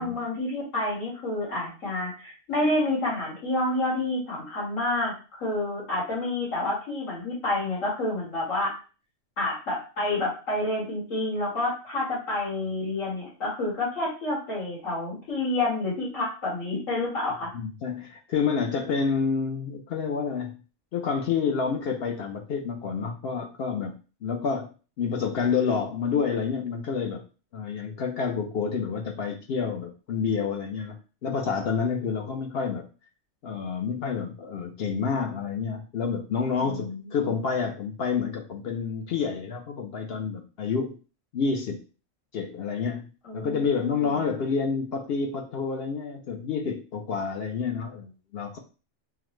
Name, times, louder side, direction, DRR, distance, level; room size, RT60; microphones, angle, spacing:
voice 1, 0.0-8.7 9.4-17.5 36.6-37.3 43.2-44.2, left 2 dB, 80° left, -6 dB, 2.1 m, -29 dB
voice 2, 17.5-20.6 20.9-24.7 25.0-27.2 27.5-30.9 31.2-32.8 33.4-40.9 41.3-41.8 42.3-43.1 43.3-48.6, left 5 dB, 60° left, 3 dB, 0.7 m, -28 dB
5.7 x 2.0 x 3.0 m, 0.34 s
omnidirectional pair, 1.3 m